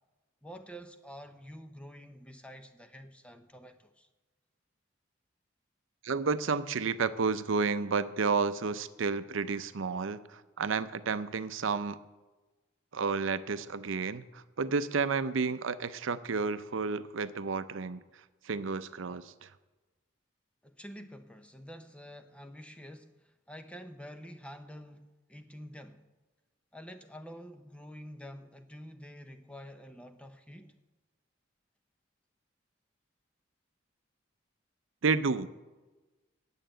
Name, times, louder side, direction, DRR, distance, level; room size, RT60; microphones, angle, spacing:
voice 1, 0.4-4.1 20.6-26.0 26.7-30.7, equal, 5° left, 8 dB, 0.6 m, -48 dB
voice 2, 6.0-12.0 12.9-18.0 18.4-19.5 35.0-35.5, right 4 dB, 70° right, 13 dB, 0.6 m, -31 dB
9.0 x 7.4 x 8.9 m, 1.2 s
head